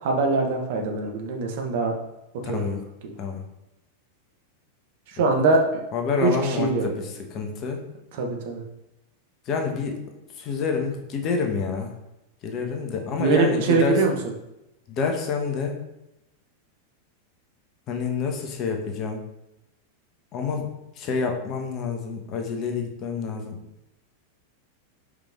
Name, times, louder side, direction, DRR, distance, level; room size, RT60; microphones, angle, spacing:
voice 1, 0.0-1.9 2.5-2.7 3.0-3.1 5.1-5.6 6.2-6.3 6.6-6.9 8.2-8.6 13.1-14.1, right 3 dB, 50° right, 2 dB, 1.1 m, -22 dB
voice 2, 2.4-2.8 3.2-3.4 5.2-5.5 5.9-7.8 9.5-10.0 10.4-11.9 12.4-14.0 14.9-15.8 17.9-19.2 20.3-20.7 21.0-23.6, left 5 dB, 35° left, 3 dB, 1.1 m, -28 dB
5.3 x 5.0 x 3.6 m, 0.90 s
figure-of-eight pair, 90°, 0 cm